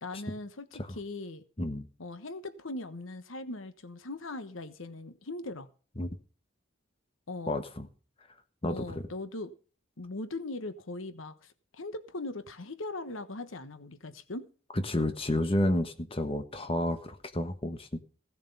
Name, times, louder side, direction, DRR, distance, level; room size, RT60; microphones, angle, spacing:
voice 1, 0.0-1.4 2.0-5.7 7.3-7.6 8.7-9.5 10.0-14.5, left 2 dB, 75° left, 11 dB, 1.2 m, -40 dB
voice 2, 7.5-7.9 8.6-9.1 14.7-18.0, left 1 dB, 30° left, 8 dB, 1.3 m, -31 dB
16.5 x 7.5 x 5.5 m, 0.38 s
head